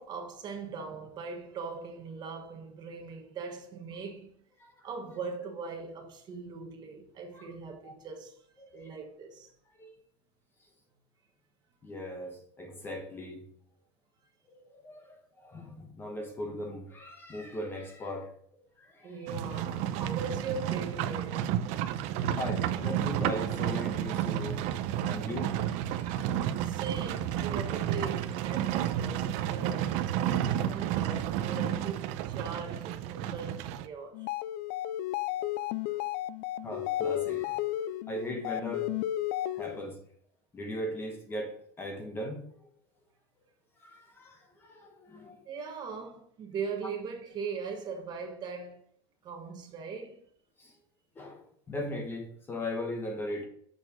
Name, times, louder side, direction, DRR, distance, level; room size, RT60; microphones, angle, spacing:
voice 1, 0.0-4.3 4.8-8.4 8.7-9.5 19.0-21.5 26.6-34.3 45.4-48.8 49.2-50.2, right 5 dB, 30° right, 1.1 m, -40 dB
voice 2, 8.6-8.9 9.8-9.9 11.8-13.4 14.5-18.3 18.8-19.1 22.4-26.3 36.6-38.9 39.5-40.0 40.5-42.7 43.8-45.4 50.6-50.7 51.2-53.5, left 1 dB, 15° left, 1.1 m, -39 dB
Livestock farm animals working animals, 19.3-33.9, right 11 dB, 55° right, 0.6 m, -31 dB
sound 1, 34.1-39.9, left 13 dB, 60° left, 0.4 m, -33 dB
6.7 x 6.3 x 4.9 m
cardioid pair, 170°, 14 cm